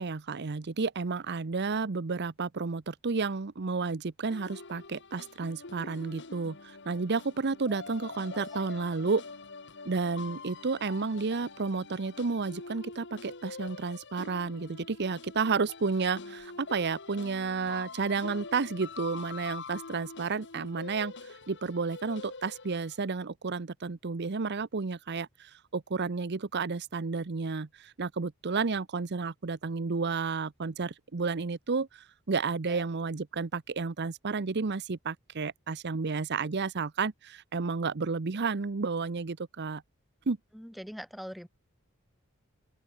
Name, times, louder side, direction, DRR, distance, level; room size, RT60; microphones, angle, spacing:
voice 1, 0.0-9.2 9.9-39.8 40.3-40.4, right 4 dB, 55° right, 0.7 m, -31 dB
sound 1, 4.3-23.0, left 4 dB, 55° left, 2.3 m, -45 dB
voice 2, 40.5-41.5, equal, ahead, 3.9 m, -43 dB
open air
head